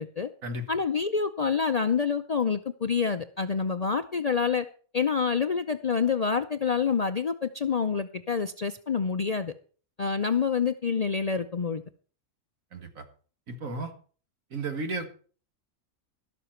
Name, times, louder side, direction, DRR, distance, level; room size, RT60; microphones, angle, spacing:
voice 1, 0.7-4.7 4.9-9.5 10.0-11.8, left 6 dB, 65° left, 0.3 m, -27 dB
voice 2, 12.7-13.0 13.5-13.9 14.5-15.1, right 2 dB, 65° right, 2.0 m, -33 dB
12.5 x 12.0 x 4.4 m
omnidirectional pair, 1.5 m